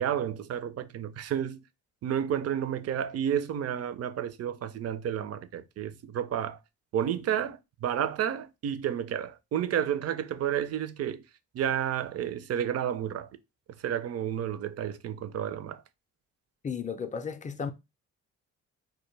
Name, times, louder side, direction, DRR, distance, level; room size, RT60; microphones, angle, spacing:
voice 1, 0.0-1.6 2.0-6.6 6.9-11.3 11.5-13.3 13.8-15.8, right 9 dB, 50° right, 0.4 m, -31 dB
voice 2, 16.6-17.7, left 6 dB, 25° left, 0.4 m, -34 dB
2.2 x 2.2 x 3.1 m
supercardioid pair, 60°, 33 cm